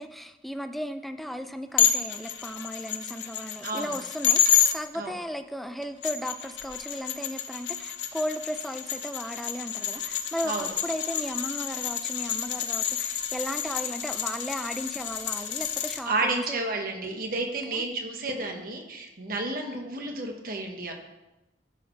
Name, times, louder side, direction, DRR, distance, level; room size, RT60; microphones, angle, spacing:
voice 1, 0.0-16.6 17.7-17.8, equal, ahead, 8 dB, 0.4 m, -35 dB
sound 1, 1.8-4.7 5.8-16.0, left 9 dB, 85° left, 0.7 m, -29 dB
voice 2, 3.6-4.0 4.9-5.2 10.4-10.7 16.0-20.9, right 2 dB, 55° right, 3 dB, 1.3 m, -31 dB
13.5 x 6.8 x 3.3 m, 1.0 s
head